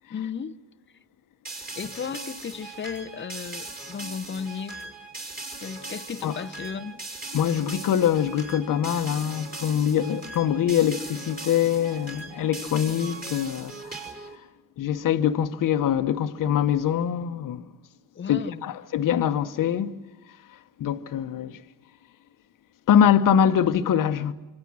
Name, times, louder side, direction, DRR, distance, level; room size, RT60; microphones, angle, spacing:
voice 1, 0.1-0.6 1.8-4.8 5.6-7.0 18.1-18.6, left 7 dB, 30° left, 0.8 m, -35 dB
sound 1, 1.4-14.4, right 2 dB, 25° right, 4.4 m, -39 dB
voice 2, 7.3-13.8 14.8-17.6 18.3-20.0 20.8-21.6 22.9-24.3, left 9 dB, 55° left, 1.2 m, -23 dB
25.5 x 25.0 x 6.3 m
cardioid pair, 100°, 39 cm